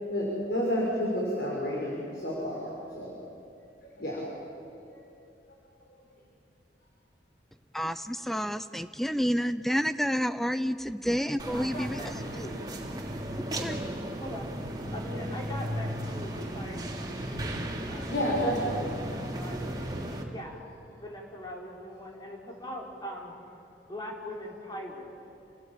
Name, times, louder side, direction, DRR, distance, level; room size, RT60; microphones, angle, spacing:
voice 1, 0.1-2.6 2.9-3.1 4.0-4.2 4.9-5.0 18.1-18.8, equal, 65° left, -4 dB, 6.1 m, -30 dB
voice 2, 7.7-12.0 13.4-13.8, equal, ahead, 12 dB, 0.5 m, -29 dB
voice 3, 11.3-12.6 13.5-13.7 14.1-14.5 14.9-17.6 17.9-18.1 18.8-20.6 21.0-23.3 23.9-25.1, equal, 25° left, -2 dB, 4.4 m, -42 dB
sound 1, 11.4-20.2, right 1 dB, 25° right, 2.9 m, -35 dB
30.0 x 19.5 x 9.0 m, 2.6 s
head